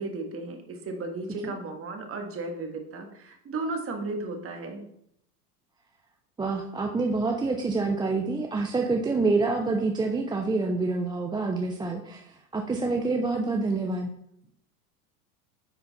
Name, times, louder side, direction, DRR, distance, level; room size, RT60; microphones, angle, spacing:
voice 1, 0.0-4.8, right 3 dB, 30° right, 4 dB, 1.7 m, -34 dB
voice 2, 6.4-14.1, right 3 dB, 10° right, 2 dB, 0.5 m, -27 dB
9.6 x 4.3 x 4.1 m, 0.73 s
hypercardioid pair, 105°, 46 cm